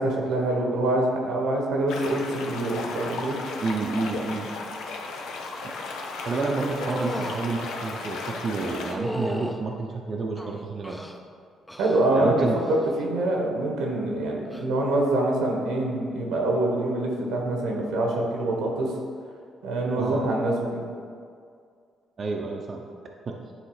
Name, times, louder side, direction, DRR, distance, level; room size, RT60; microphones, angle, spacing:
voice 1, 0.0-3.4 11.8-18.9 19.6-20.8, right 1 dB, 90° right, 0 dB, 1.4 m, -25 dB
sound 1, 1.9-8.9, left 3 dB, 85° left, 0.7 m, -35 dB
voice 2, 3.6-4.5 5.6-5.7 6.2-11.0 12.1-12.6 20.0-20.2 22.2-22.8 23.3-23.4, right 3 dB, 45° right, 0 dB, 0.7 m, -29 dB
sound 2, 6.8-7.4 8.8-9.6 10.4-11.2 11.7-12.1 12.5-12.9 14.4-14.6, equal, 5° left, 0.6 m, -34 dB
9.6 x 3.3 x 4.9 m, 2.2 s
cardioid pair, 90°, 0 cm